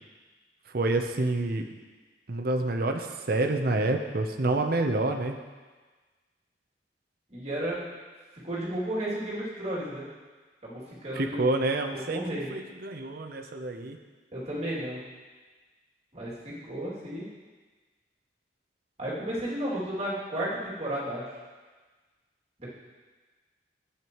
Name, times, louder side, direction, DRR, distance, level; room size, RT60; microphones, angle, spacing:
voice 1, 0.7-1.6 2.3-5.4 11.1-14.0, right 2 dB, 55° right, 4 dB, 0.8 m, -28 dB
voice 2, 7.3-7.8 8.4-10.0 10.6-11.4 11.9-12.5 14.3-15.0 16.1-17.2 19.0-21.3 22.6-22.7, right 1 dB, 40° right, -7 dB, 2.7 m, -33 dB
12.5 x 8.3 x 3.1 m, 1.4 s
head